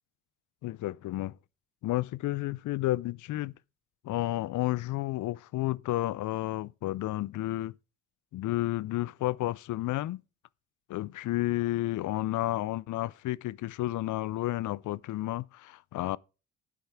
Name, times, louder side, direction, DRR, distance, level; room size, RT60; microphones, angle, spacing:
voice 1, 0.6-1.4 1.8-3.5 4.0-7.7 8.3-10.2 10.9-16.2, left 16 dB, 75° left, 0.5 m, -31 dB
10.5 x 8.3 x 3.5 m
cardioid pair, 90°, 31 cm